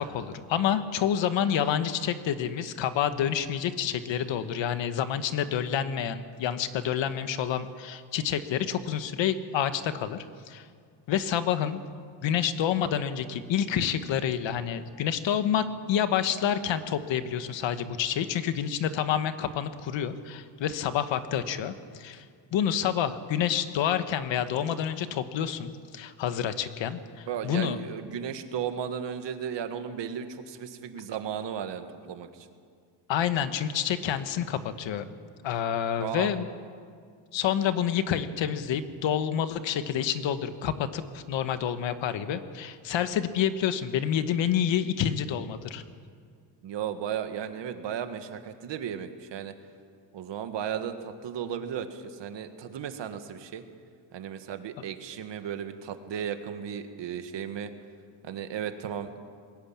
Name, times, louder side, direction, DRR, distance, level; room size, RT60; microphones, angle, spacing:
voice 1, 0.0-10.7 11.1-11.8 12.2-22.2 22.5-27.8 33.1-35.2 35.4-36.5 37.3-45.8, left 9 dB, 90° left, 10 dB, 1.3 m, -28 dB
voice 2, 27.3-32.5 36.0-36.3 46.6-49.5 50.1-53.6 54.1-57.7 58.2-59.2, right 8 dB, 75° right, 8 dB, 1.8 m, -35 dB
21.5 x 17.5 x 8.7 m, 2.1 s
cardioid pair, 140°, 44 cm